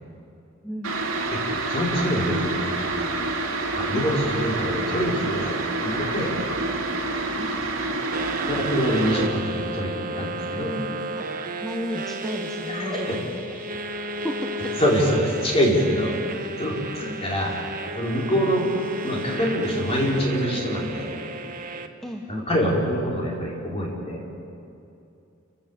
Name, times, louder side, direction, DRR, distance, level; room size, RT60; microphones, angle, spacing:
sound 1, 0.8-9.3, right 2 dB, 70° right, 2.8 m, -27 dB
voice 1, 1.7-2.5 3.7-6.4 8.4-10.7 12.7-13.2 14.8-16.1 16.6-17.6 18.0-18.7 19.0-21.1 22.3-24.2, equal, 30° left, -3 dB, 5.1 m, -25 dB
voice 2, 7.3-7.8 10.6-11.3 11.6-13.4 14.2-14.5 16.1-16.3 17.0-17.2 21.1-21.3 22.0-22.2, equal, ahead, 0 dB, 1.2 m, -34 dB
sound 2, 8.1-21.9, right 1 dB, 40° right, 1.2 m, -33 dB
28.5 x 16.5 x 7.3 m, 2.6 s
head